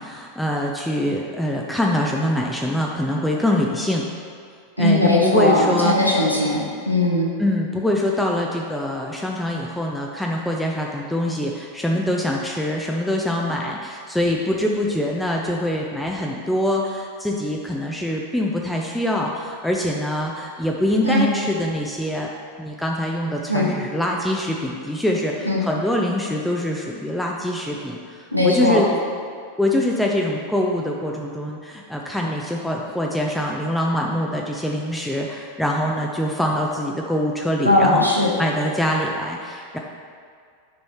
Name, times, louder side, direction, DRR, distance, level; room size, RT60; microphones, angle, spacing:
voice 1, 0.0-4.0 4.8-6.2 7.4-22.3 22.6-28.9 29.6-38.1 38.4-39.8, left 1 dB, 5° left, -1 dB, 0.5 m, -24 dB
voice 2, 4.8-7.3 21.0-21.2 23.5-23.7 25.5-25.6 28.3-28.8 37.6-38.3, left 1 dB, 90° left, -3 dB, 1.2 m, -18 dB
9.4 x 5.4 x 3.0 m, 2.2 s
figure-of-eight pair, 90°, 0 cm